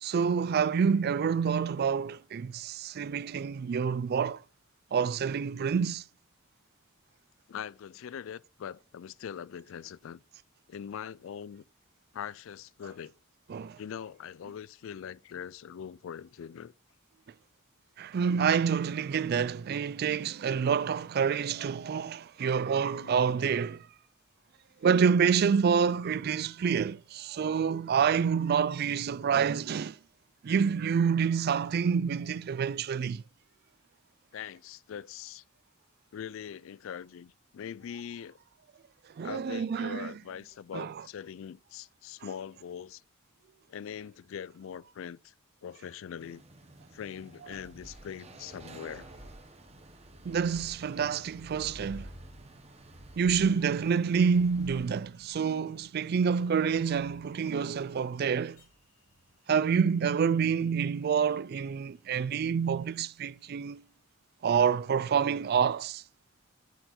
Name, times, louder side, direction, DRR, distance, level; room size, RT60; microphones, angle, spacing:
voice 1, 0.0-4.4 4.9-6.0 13.5-13.8 18.0-23.9 24.8-30.0 30.4-33.2 39.2-40.1 40.7-40.9 50.2-52.1 53.2-58.6 59.5-63.8 64.4-66.0, right 6 dB, 50° right, 0.3 m, -27 dB
voice 2, 7.5-10.2 10.7-11.6 12.1-13.1 13.8-16.7 23.0-23.2 34.3-35.4 36.1-38.4 39.2-43.0 43.7-45.3 45.6-46.4 46.9-49.1, left 8 dB, 65° left, 0.3 m, -42 dB
sound 1, 46.2-55.0, right 2 dB, 30° right, 1.2 m, -54 dB
sound 2, 47.5-62.4 62.7-63.5, equal, 85° left, 4.6 m, -53 dB
11.0 x 4.5 x 4.3 m
head